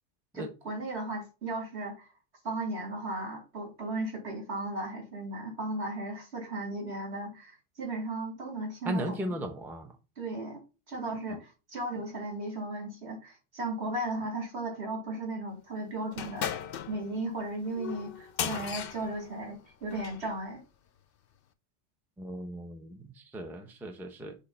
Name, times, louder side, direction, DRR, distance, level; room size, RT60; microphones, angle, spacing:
voice 1, 0.3-2.1 2.4-9.3 10.2-10.6 10.9-20.6, right 2 dB, 60° right, 2.4 m, -36 dB
voice 2, 8.8-9.9 22.2-24.4, equal, ahead, 0.7 m, -36 dB
sound 1, 16.1-20.3, left 9 dB, 60° left, 0.7 m, -37 dB
6.5 x 2.9 x 5.5 m
omnidirectional pair, 1.2 m